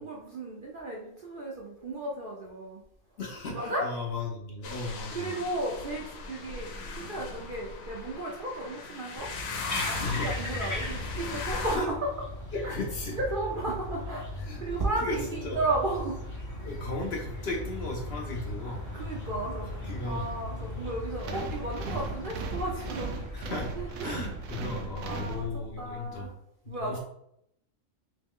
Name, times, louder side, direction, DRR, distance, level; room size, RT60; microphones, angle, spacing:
voice 1, 0.0-2.8 3.5-3.8 5.1-6.7 7.0-9.3 9.7-11.9 12.6-12.8 13.1-16.2 16.5-16.7 18.9-19.7 20.0-23.2 23.5-24.1 24.8-25.5 25.8-26.3 26.7-27.0, right 2 dB, 50° right, -2 dB, 0.6 m, -34 dB
voice 2, 3.2-5.3 10.0-10.3 11.7-11.9 12.5-13.2 14.4-14.6 15.0-15.6 16.6-18.8 19.8-20.2 23.3-23.7 24.0-26.4 26.6-27.0, left 2 dB, 60° left, 0 dB, 0.8 m, -35 dB
sound 1, 4.6-11.8, left 4 dB, 80° left, 1.1 m, -38 dB
sound 2, 9.2-25.2, left 1 dB, 20° left, 0.5 m, -38 dB
sound 3, 21.2-25.9, right 4 dB, 90° right, 1.0 m, -38 dB
3.1 x 3.0 x 3.6 m, 0.75 s
omnidirectional pair, 1.4 m